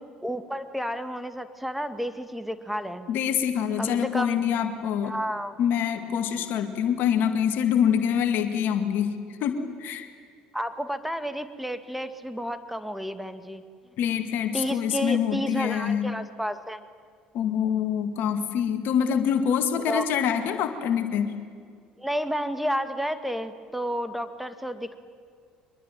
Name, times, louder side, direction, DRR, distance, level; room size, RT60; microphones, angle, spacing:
voice 1, 0.2-3.1 3.8-4.6 5.0-5.5 10.5-13.6 14.5-16.8 19.9-20.0 22.0-25.0, equal, 5° right, 10 dB, 2.1 m, -31 dB
voice 2, 3.1-5.1 5.6-9.1 9.4-10.1 14.0-16.1 17.3-21.3, left 8 dB, 60° left, 7 dB, 2.1 m, -25 dB
24.0 x 21.5 x 9.2 m, 2.1 s
hypercardioid pair, 60°, 4 cm